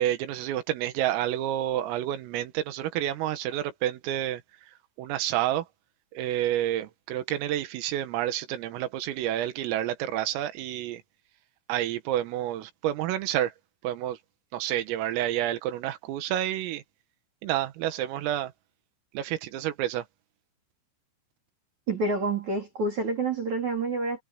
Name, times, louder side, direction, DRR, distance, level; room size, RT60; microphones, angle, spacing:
voice 1, 0.0-4.4 5.0-5.7 6.1-11.0 11.7-13.5 13.8-14.2 14.5-16.8 17.4-18.5 19.1-20.0, right 12 dB, 90° right, 4.2 m, -29 dB
voice 2, 21.9-24.2, right 3 dB, 40° right, 4.8 m, -28 dB
omnidirectional pair, 5.8 m